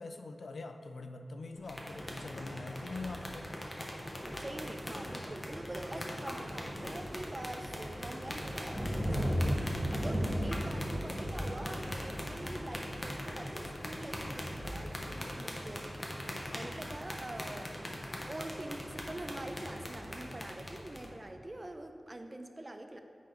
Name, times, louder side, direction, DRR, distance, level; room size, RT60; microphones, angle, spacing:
voice 1, 0.0-3.6, left 3 dB, 75° left, 7 dB, 0.4 m, -43 dB
sound 1, 1.6-21.1, left 1 dB, 25° left, 0.9 m, -43 dB
Thunder, 1.6-21.3, equal, 5° right, 1.4 m, -40 dB
voice 2, 4.4-18.0 18.3-23.0, right 1 dB, 30° right, 6 dB, 0.5 m, -45 dB
8.3 x 3.9 x 5.0 m, 2.6 s
wide cardioid pair, 95°, 0 cm